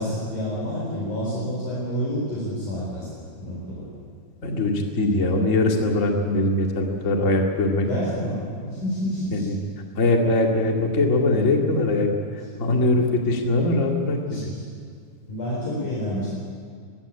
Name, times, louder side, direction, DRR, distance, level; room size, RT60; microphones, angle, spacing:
voice 1, 0.0-3.1 3.4-3.9 7.8-9.5 14.3-14.6 15.3-16.3, equal, 55° left, -5 dB, 5.5 m, -29 dB
voice 2, 4.4-7.9 9.3-9.6 10.0-12.1 12.6-14.5, left 2 dB, 25° left, 1 dB, 1.9 m, -21 dB
21.5 x 16.0 x 9.8 m, 2.1 s
omnidirectional pair, 4.3 m